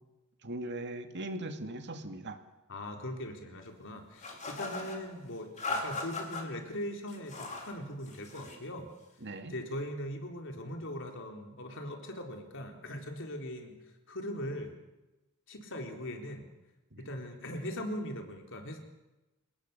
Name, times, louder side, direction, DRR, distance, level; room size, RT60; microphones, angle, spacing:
voice 1, 0.4-2.4 9.2-9.5 16.9-17.1, right 1 dB, 55° right, 6 dB, 2.4 m, -39 dB
voice 2, 2.7-8.9 9.5-13.8 14.1-14.7 15.5-16.5 17.0-18.8, left 1 dB, 60° left, 3 dB, 4.0 m, -40 dB
sound 1, 4.2-5.0 5.6-6.4 7.1-7.7 8.0-8.6, left 3 dB, 35° left, 4.6 m, -38 dB
28.0 x 19.0 x 7.0 m, 1.0 s
head